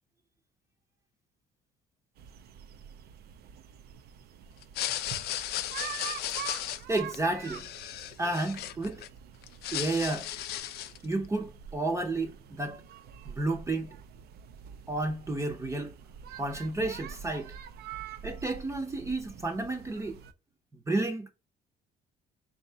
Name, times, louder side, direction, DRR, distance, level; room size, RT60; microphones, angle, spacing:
Sounding play, 2.2-20.3, right 8 dB, 70° right, 0.5 m, -46 dB
sound 1, 4.6-9.1 9.4-11.1, left 12 dB, 70° left, 0.4 m, -35 dB
voice 1, 6.9-7.7 8.2-9.0 9.7-10.3 11.0-12.8 13.3-13.9 14.9-15.9 16.4-17.5 18.2-20.2 20.9-21.3, right 2 dB, 15° right, 0.7 m, -31 dB
3.9 x 2.8 x 3.4 m
cardioid pair, 110°, 17 cm